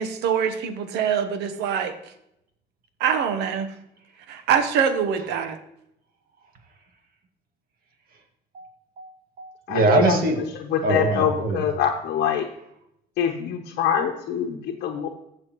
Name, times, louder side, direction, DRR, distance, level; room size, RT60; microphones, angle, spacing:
voice 1, 0.0-1.9 3.0-3.7 4.3-5.6, right 7 dB, 85° right, 9 dB, 1.0 m, -24 dB
voice 2, 8.5-10.4 10.8-11.6, right 2 dB, 60° right, 4 dB, 1.9 m, -23 dB
voice 3, 9.7-10.2 10.5-12.5 13.2-15.1, left 8 dB, 75° left, 1 dB, 0.9 m, -25 dB
15.5 x 6.4 x 3.0 m, 0.80 s
cardioid pair, 110°, 17 cm